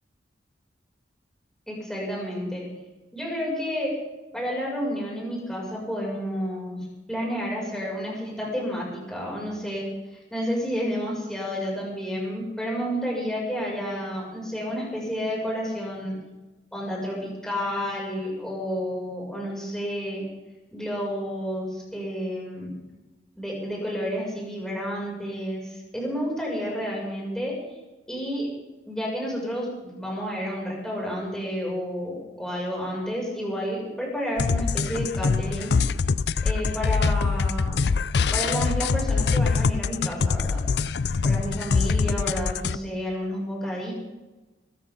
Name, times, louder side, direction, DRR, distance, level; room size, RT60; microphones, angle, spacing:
voice 1, 1.7-2.7 3.1-3.9 4.3-6.8 7.1-16.1 16.7-20.2 20.7-22.7 23.4-27.6 28.1-28.5 28.9-35.8 36.4-37.9 38.3-40.6 41.2-43.9, equal, 5° left, -4 dB, 7.0 m, -30 dB
sound 1, 34.4-42.8, left 4 dB, 65° left, 0.5 m, -24 dB
23.5 x 14.5 x 4.0 m, 1.1 s
head